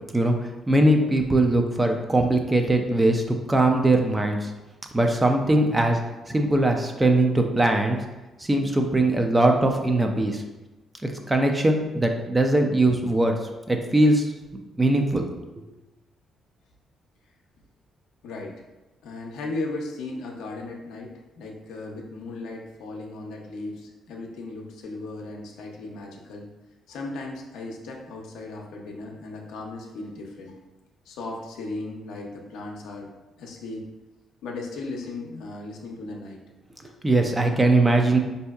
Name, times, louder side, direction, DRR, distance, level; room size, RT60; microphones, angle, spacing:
voice 1, 0.1-3.2 3.5-4.5 4.9-6.0 6.3-8.0 8.4-10.4 11.0-13.3 13.7-14.3 14.8-15.2 15.6-15.7 36.8-38.2, right 1 dB, 20° right, 4 dB, 0.4 m, -21 dB
voice 2, 18.2-18.6 19.0-26.5 26.9-30.6 31.1-33.1 33.4-33.9 34.4-36.4 36.8-36.9, left 2 dB, 85° left, 0 dB, 0.6 m, -36 dB
4.3 x 2.7 x 2.3 m, 1.1 s
cardioid pair, 90°, 0 cm